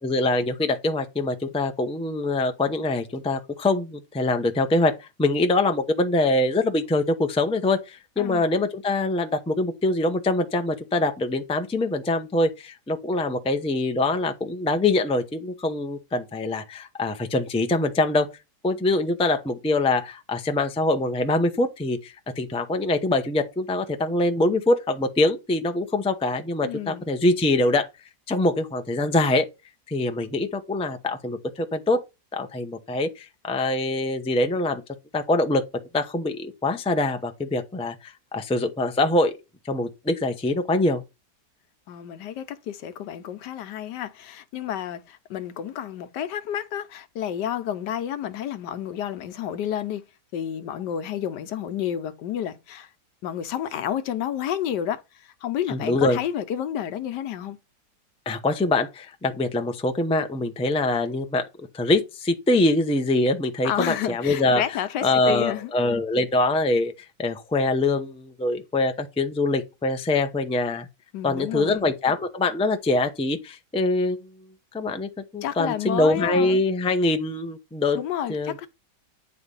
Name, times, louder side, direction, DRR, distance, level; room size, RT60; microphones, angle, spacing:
voice 1, 0.0-18.3 18.6-27.9 28.3-29.5 29.9-32.0 32.3-34.8 35.1-35.7 35.9-39.3 39.6-41.0 55.7-56.2 58.3-61.5 61.7-64.6 65.0-66.9 67.2-70.9 71.2-74.3 74.7-78.0 78.3-78.7, left 2 dB, 10° left, 0.4 m, -24 dB
voice 2, 26.6-27.0 41.9-50.0 50.3-52.9 53.2-55.0 55.4-57.6 63.6-65.7 71.1-71.8 75.4-76.5 77.9-78.7, left 10 dB, 85° left, 1.4 m, -30 dB
9.5 x 3.3 x 5.4 m
omnidirectional pair, 1.8 m